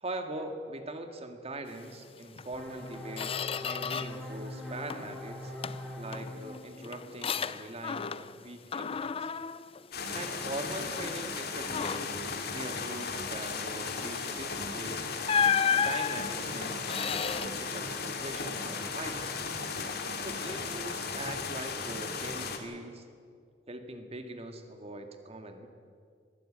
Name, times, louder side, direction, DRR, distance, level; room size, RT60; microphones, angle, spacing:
voice 1, 0.0-5.5 6.0-9.3 10.1-15.1 15.8-19.4 20.2-23.0 23.7-25.7, right 1 dB, 35° right, 6 dB, 1.9 m, -42 dB
Squeak, 2.4-2.5 2.9-4.3 4.6-5.2 5.6-8.4 8.7-10.6 11.0-11.2 11.6-12.3 14.4-14.6 15.3-17.5, left 7 dB, 30° left, 0.5 m, -32 dB
sound 1, 2.5-7.9, left 1 dB, ahead, 6.3 m, -43 dB
sound 2, 9.9-22.6, left 4 dB, 60° left, 2.2 m, -36 dB
21.5 x 14.5 x 8.8 m, 2.2 s
head